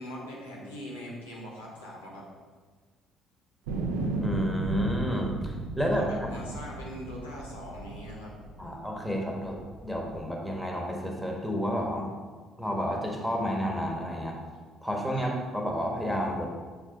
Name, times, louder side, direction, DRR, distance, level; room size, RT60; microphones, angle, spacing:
voice 1, 0.0-2.2 5.8-8.8 15.1-15.3, equal, 85° left, -5 dB, 1.4 m, -42 dB
sound 1, 3.7-8.9 9.4-10.2, right 3 dB, 75° right, 0.8 m, -34 dB
voice 2, 4.2-6.4 8.6-12.1 12.6-14.4 14.8-16.5, equal, ahead, 0 dB, 1.5 m, -31 dB
7.0 x 4.9 x 3.9 m, 1.4 s
figure-of-eight pair, 50°, 0 cm